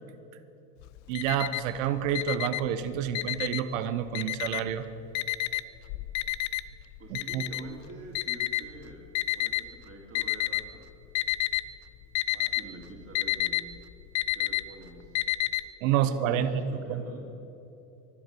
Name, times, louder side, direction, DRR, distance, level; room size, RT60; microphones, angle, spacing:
Alarm, 0.8-1.8 2.1-3.8 4.1-4.8 5.1-9.6 10.1-10.8 11.0-11.7 11.9-15.6, left 17 dB, 40° left, 0.6 m, -30 dB
voice 1, 1.1-4.9 7.1-7.4 15.8-16.5 16.9-17.0, right 10 dB, 55° right, 12 dB, 1.2 m, -28 dB
voice 2, 7.0-9.1 9.3-10.9 12.3-13.7 14.3-15.1 16.0-17.3, right 2 dB, 30° right, 1 dB, 3.4 m, -46 dB
23.5 x 8.0 x 7.0 m, 2.9 s
hypercardioid pair, 90°, 47 cm